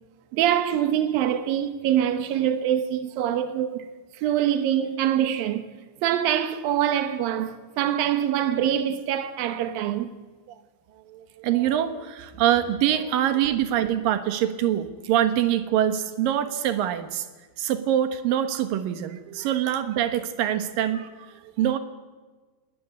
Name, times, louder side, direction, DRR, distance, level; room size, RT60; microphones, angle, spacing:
voice 1, 0.3-3.9 4.2-5.6 6.0-10.1 19.3-19.5, right 10 dB, 85° right, 2.0 m, -24 dB
voice 2, 11.1-17.2 17.6-21.0 21.6-21.8, right 11 dB, 65° right, 2.3 m, -24 dB
20.5 x 17.5 x 9.5 m
omnidirectional pair, 5.6 m